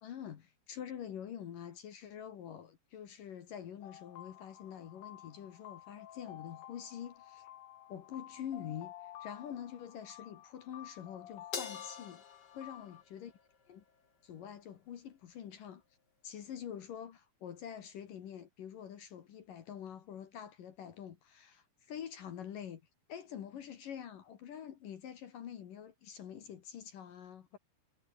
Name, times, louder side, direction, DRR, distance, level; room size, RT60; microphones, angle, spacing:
voice 1, 0.0-7.5 7.9-12.2 12.5-13.3 13.7-13.8 14.2-15.8 16.2-22.8 23.1-27.6, left 9 dB, 60° left, 3.1 m, -46 dB
sound 1, 3.8-13.0, left 12 dB, 75° left, 3.6 m, -52 dB
Crash cymbal, 11.5-14.1, left 5 dB, 35° left, 2.0 m, -46 dB
omnidirectional pair, 4.8 m